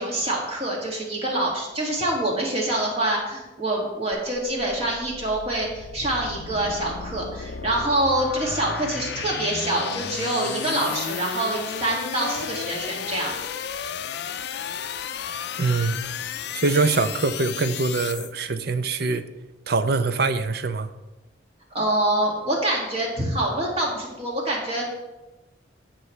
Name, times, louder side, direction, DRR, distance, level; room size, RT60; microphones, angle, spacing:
voice 1, 0.0-13.4 21.7-24.8, right 1 dB, 35° right, 2.1 m, -26 dB
sound 1, 4.1-18.3, left 7 dB, 60° left, 0.5 m, -33 dB
voice 2, 15.6-16.0 16.5-19.2 19.7-20.9, right 3 dB, 55° right, 0.6 m, -23 dB
16.0 x 6.1 x 3.2 m
head